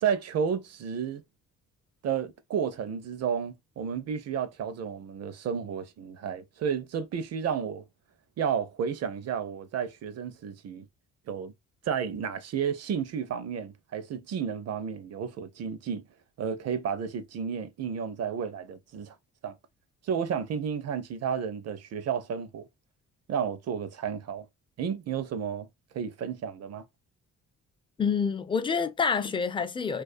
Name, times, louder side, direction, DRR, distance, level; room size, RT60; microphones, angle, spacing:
voice 1, 0.0-1.2 2.0-7.8 8.4-10.9 11.3-11.5 11.8-16.0 16.4-19.2 19.4-19.5 20.0-22.7 23.3-24.4 24.8-25.7 25.9-26.8, right 7 dB, 55° right, 0.6 m, -32 dB
voice 2, 28.0-30.0, left 6 dB, 15° left, 0.3 m, -27 dB
2.4 x 2.3 x 2.5 m
cardioid pair, 90°, 30 cm